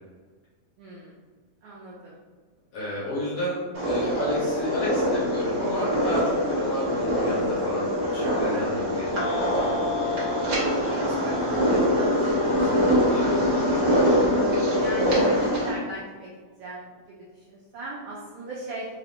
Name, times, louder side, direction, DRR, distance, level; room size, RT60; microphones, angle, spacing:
voice 1, 0.8-1.2 1.6-2.2 10.2-11.3 11.7-12.7 14.8-16.3 16.6-16.9 17.4-18.9, right 2 dB, 85° right, -5 dB, 1.3 m, -37 dB
voice 2, 2.7-9.7 13.1-13.4, equal, 65° left, -8 dB, 1.7 m, -31 dB
sound 1, 3.7-15.7, equal, 70° right, 0.9 m, -24 dB
sound 2, 9.1-13.4, left 2 dB, 85° left, 2.3 m, -36 dB
5.0 x 2.1 x 2.9 m, 1.5 s
omnidirectional pair, 3.4 m